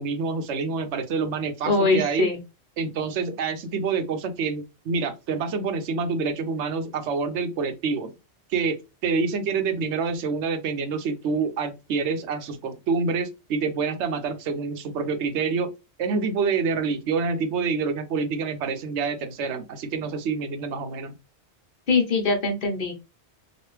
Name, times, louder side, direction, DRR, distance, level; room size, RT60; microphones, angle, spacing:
voice 1, 0.0-2.3 2.8-8.1 8.5-8.8 9.0-15.7 16.0-21.1, right 5 dB, 85° right, 0.9 m, -27 dB
voice 2, 1.6-2.4 21.9-22.9, left 3 dB, 50° left, 1.0 m, -22 dB
2.9 x 2.5 x 3.1 m
omnidirectional pair, 1.2 m